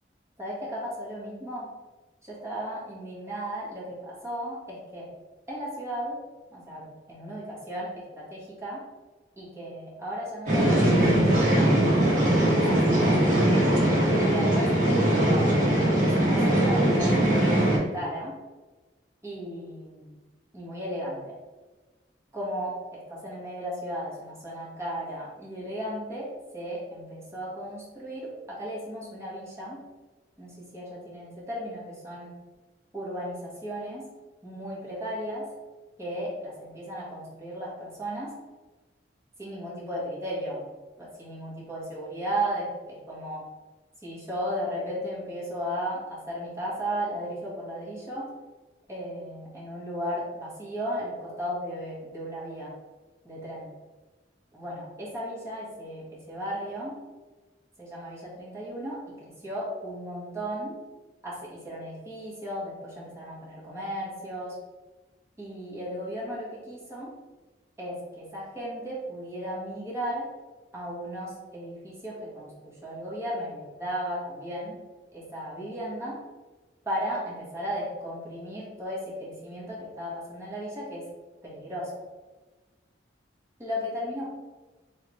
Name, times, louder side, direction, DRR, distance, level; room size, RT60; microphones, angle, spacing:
voice 1, 0.4-1.7 2.2-5.1 5.5-6.2 6.5-8.8 9.4-13.4 13.9-14.7 15.2-15.5 16.0-17.6 17.9-18.4 19.2-20.2 20.5-21.3 22.3-29.8 30.4-32.4 32.9-34.0 34.4-35.5 36.0-38.3 39.4-40.6 41.0-43.4 44.0-48.3 48.9-52.7 53.2-53.7 54.5-57.0 57.8-60.8 61.2-64.6 65.4-67.1 67.8-70.3 70.7-74.8 75.1-76.2 76.8-81.1 81.4-82.0 83.6-84.3, equal, 15° right, -6 dB, 1.3 m, -35 dB
sound 1, 10.5-17.8, right 1 dB, 45° right, 1.5 m, -21 dB
3.8 x 3.3 x 3.0 m, 1.2 s
head